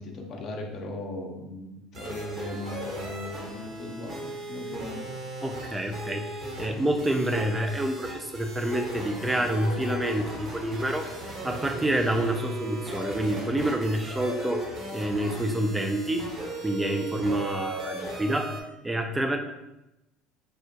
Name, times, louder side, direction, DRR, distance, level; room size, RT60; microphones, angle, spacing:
voice 1, 0.0-5.1, left 2 dB, 50° left, 1 dB, 0.6 m, -38 dB
sound 1, 1.9-18.6, right 1 dB, 45° right, 0.9 m, -38 dB
voice 2, 5.4-11.1 11.4-16.3 16.6-18.6 18.8-19.4, right 1 dB, 15° right, 5 dB, 0.4 m, -28 dB
3.5 x 2.1 x 2.7 m, 0.95 s
hypercardioid pair, 75°, 0 cm